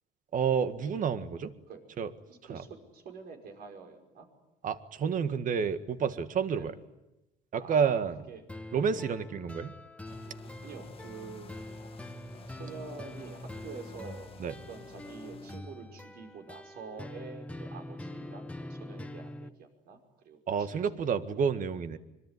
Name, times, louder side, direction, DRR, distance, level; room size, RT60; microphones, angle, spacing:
voice 1, 0.3-1.5 2.0-2.1 2.5-2.6 4.6-6.7 7.5-8.2 8.7-9.7 14.4-14.5 20.5-22.0, right 6 dB, 50° right, 10 dB, 1.8 m, -29 dB
voice 2, 2.3-4.3 6.1-6.2 6.5-6.7 7.6-8.0 8.3-8.4 8.9-9.1 10.6-11.6 12.5-21.0, right 5 dB, 65° right, 4 dB, 5.5 m, -47 dB
sound 1, 8.5-19.5, left 1 dB, 5° left, 1.3 m, -44 dB
sound 2, 10.1-15.6, left 4 dB, 35° left, 1.9 m, -51 dB
25.0 x 23.5 x 9.8 m, 0.96 s
cardioid pair, 110°, 17 cm